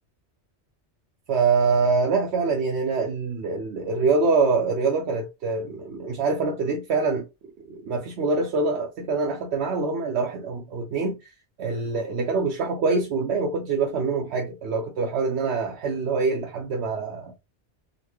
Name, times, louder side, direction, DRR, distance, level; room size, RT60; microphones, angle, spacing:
voice 1, 1.3-7.3 7.7-11.3 11.6-17.3, right 4 dB, 70° right, 0.9 m, -25 dB
4.0 x 2.1 x 2.9 m
omnidirectional pair, 1.2 m